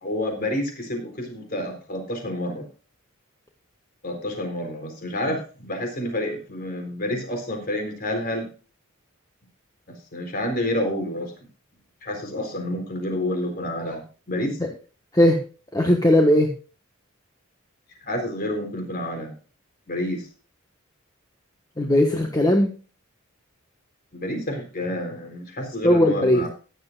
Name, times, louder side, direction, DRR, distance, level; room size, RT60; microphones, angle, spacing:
voice 1, 0.0-2.7 4.0-8.5 10.1-11.3 12.0-14.6 18.0-19.3 19.9-20.2 24.1-26.5, left 1 dB, 50° left, 3 dB, 3.9 m, -29 dB
voice 2, 15.7-16.5 21.8-22.7 25.8-26.4, left 1 dB, 20° left, 2 dB, 1.4 m, -18 dB
16.0 x 11.5 x 2.5 m, 0.35 s
head